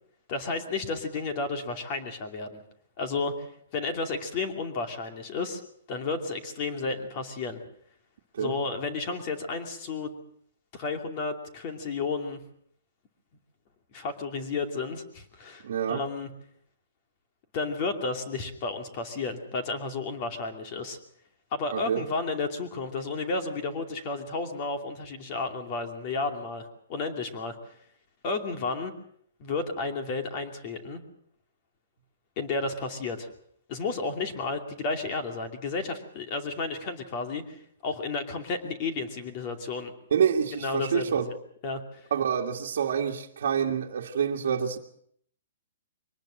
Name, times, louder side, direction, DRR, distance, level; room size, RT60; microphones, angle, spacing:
voice 1, 0.3-2.6 3.0-3.4 3.7-5.6 5.9-7.6 8.4-10.2 10.7-12.4 13.9-16.3 17.5-21.0 21.5-27.6 28.2-28.9 29.4-31.0 32.4-33.3 33.7-39.9 40.6-41.4 41.6-42.1, left 4 dB, 30° left, 2.6 m, -32 dB
voice 2, 15.6-16.0 21.7-22.0 40.1-41.3 42.1-44.8, right 7 dB, 60° right, 1.8 m, -27 dB
23.5 x 19.0 x 6.5 m
hypercardioid pair, 170°, 0 cm